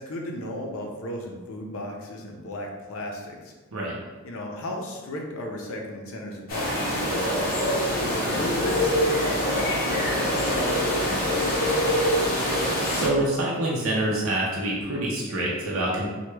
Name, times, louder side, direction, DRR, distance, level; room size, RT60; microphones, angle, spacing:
voice 1, 0.0-3.5 4.2-7.6 8.0-11.8, left 1 dB, 75° left, 0 dB, 0.6 m, -35 dB
sound 1, 6.5-13.1, equal, 40° left, 0.7 m, -24 dB
voice 2, 12.9-16.1, right 1 dB, 70° right, -4 dB, 0.6 m, -26 dB
3.1 x 2.2 x 3.3 m, 1.3 s
head